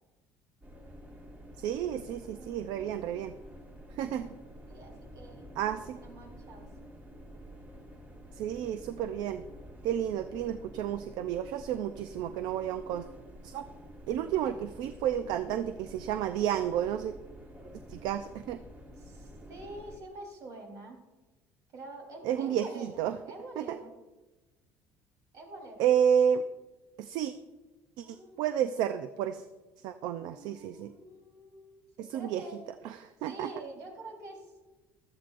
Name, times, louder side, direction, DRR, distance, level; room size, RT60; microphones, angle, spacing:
sound 1, 0.6-20.0, equal, 25° right, 1.9 m, -49 dB
voice 1, 1.6-3.3 4.0-4.3 5.6-6.0 8.4-9.4 9.8-13.1 13.4-13.7 14.1-17.1 17.9-18.6 22.2-23.1 23.6-23.8 25.8-26.4 27.0-27.3 28.0-28.1 28.4-29.4 29.8-30.9 32.0-32.4 32.8-33.5, right 9 dB, 75° right, 10 dB, 0.5 m, -31 dB
voice 2, 2.1-2.6 4.7-5.5 5.9-6.7 18.9-21.0 21.7-23.9 25.3-25.9 28.0-28.4 30.2-32.6 33.2-34.6, right 2 dB, 55° right, 0 dB, 3.8 m, -47 dB
15.5 x 13.0 x 2.6 m, 1.1 s
cardioid pair, 125°, 7 cm